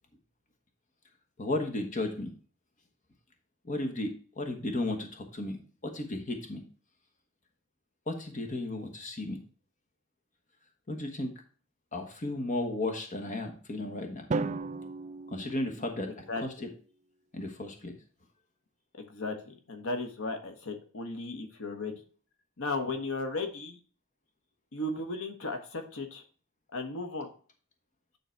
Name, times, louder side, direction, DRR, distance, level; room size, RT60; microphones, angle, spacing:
voice 1, 1.4-2.3 3.6-5.6 5.8-6.6 8.1-9.4 10.9-11.3 11.9-14.3 15.3-16.7 17.3-17.9, left 2 dB, 35° left, 3 dB, 1.2 m, -34 dB
Drum, 14.3-16.4, right 3 dB, 35° right, 0.4 m, -35 dB
voice 2, 19.0-21.9 22.6-23.8 24.7-26.2 26.7-27.3, left 2 dB, 65° left, 5 dB, 1.2 m, -35 dB
9.4 x 4.0 x 4.4 m, 0.41 s
head